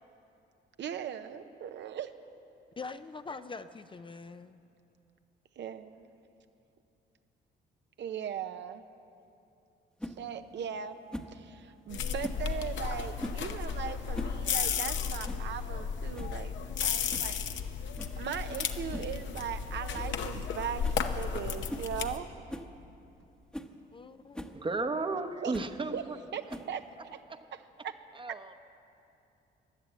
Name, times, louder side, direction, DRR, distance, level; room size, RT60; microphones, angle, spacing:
voice 1, 0.8-2.1 5.6-6.1 8.0-8.8 10.2-11.0 11.3-17.5 18.2-22.3 25.4-25.5 25.9-26.0 26.3-27.2 27.5-28.0, right 8 dB, 65° right, 9 dB, 0.8 m, -39 dB
voice 2, 2.8-4.6 23.9-24.6, left 4 dB, 25° left, 11 dB, 0.5 m, -44 dB
sound 1, 10.0-10.2 11.1-11.4 12.2-12.5 13.2-13.5 14.0-14.4 14.7-14.8 15.3-15.5 15.8-15.9 16.1-16.4 17.1-17.3 18.0-18.2 18.9-19.2 19.5-19.6 19.9-20.1 20.4-20.5 20.8-21.1 21.7-21.9 22.5-22.7 23.2-23.3 23.5-23.7 24.3-24.6 25.5-25.7 26.5-26.9, equal, 5° left, 1.0 m, -41 dB
sound 2, 11.9-22.2, left 7 dB, 70° left, 0.9 m, -34 dB
voice 3, 24.5-26.2 26.5-26.6 27.3-27.4 28.1-28.5, right 3 dB, 25° right, 8 dB, 0.9 m, -34 dB
16.0 x 10.5 x 8.1 m, 2.7 s
cardioid pair, 90°, 20 cm